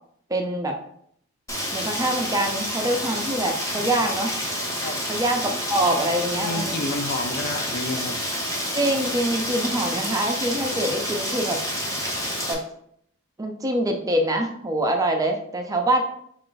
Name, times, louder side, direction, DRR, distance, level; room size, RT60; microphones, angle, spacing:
voice 1, 0.3-0.8 1.7-4.3 5.1-6.8 8.7-11.6 12.5-12.6 13.4-16.0, right 1 dB, 15° right, 3 dB, 0.4 m, -24 dB
Rain, 1.5-12.5, equal, 15° left, 0.7 m, -29 dB
voice 2, 6.3-8.2, left 2 dB, 45° left, 7 dB, 0.4 m, -30 dB
4.7 x 2.5 x 3.8 m, 0.69 s
head